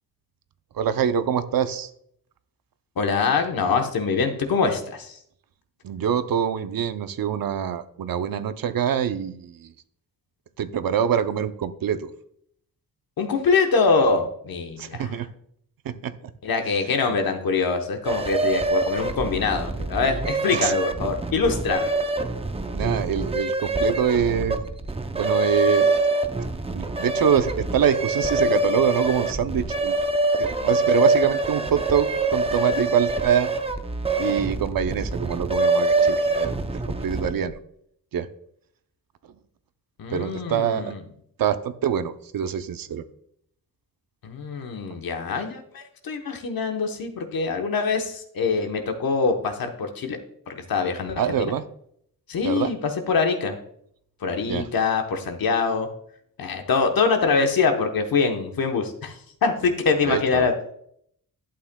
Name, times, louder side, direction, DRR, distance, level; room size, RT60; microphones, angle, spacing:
voice 1, 0.7-1.9 5.8-9.7 10.6-12.1 14.8-15.3 15.8-16.3 20.5-20.7 22.7-24.6 25.1-26.0 26.7-30.0 30.4-33.5 34.2-36.6 36.8-37.6 38.1-38.3 40.1-40.9 41.4-43.0 51.2-51.7 52.4-52.7 54.5-54.7 60.0-60.5, right 8 dB, 70° right, 11 dB, 0.6 m, -25 dB
voice 2, 3.0-5.2 13.2-15.1 16.4-21.9 40.0-41.0 44.2-50.2 50.5-51.5 52.3-53.6 54.2-55.9 56.4-60.5, left 4 dB, 70° left, 5 dB, 1.0 m, -24 dB
sound 1, 18.0-37.5, right 2 dB, 15° right, 0.5 m, -25 dB
11.5 x 8.5 x 2.2 m, 0.68 s
wide cardioid pair, 170°, 36 cm